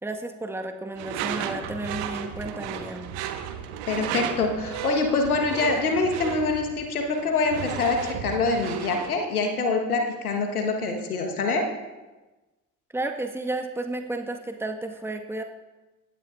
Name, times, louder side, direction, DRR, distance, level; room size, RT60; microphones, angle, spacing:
voice 1, 0.0-3.1 12.9-15.4, right 2 dB, 5° right, 4 dB, 1.5 m, -32 dB
Door / Screech, 1.0-9.2, right 9 dB, 60° right, 1.4 m, -34 dB
voice 2, 3.9-11.7, left 3 dB, 85° left, 4 dB, 1.4 m, -25 dB
20.0 x 16.5 x 2.5 m, 1.1 s
figure-of-eight pair, 55°, 43 cm